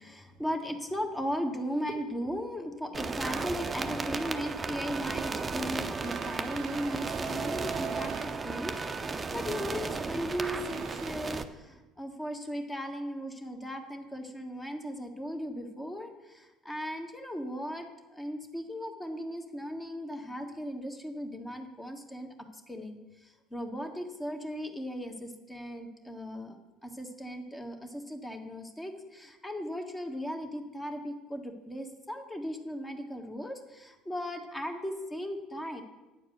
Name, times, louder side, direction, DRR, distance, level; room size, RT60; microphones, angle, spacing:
voice 1, 0.0-26.6 26.8-35.8, equal, 15° left, 4 dB, 1.5 m, -37 dB
sound 1, 2.9-11.4, right 4 dB, 25° right, 0.7 m, -34 dB
sound 2, 6.0-8.4 9.3-9.6 10.2-11.1, right 10 dB, 65° right, 0.6 m, -45 dB
9.2 x 4.8 x 7.7 m, 1.1 s
hypercardioid pair, 70°, 0 cm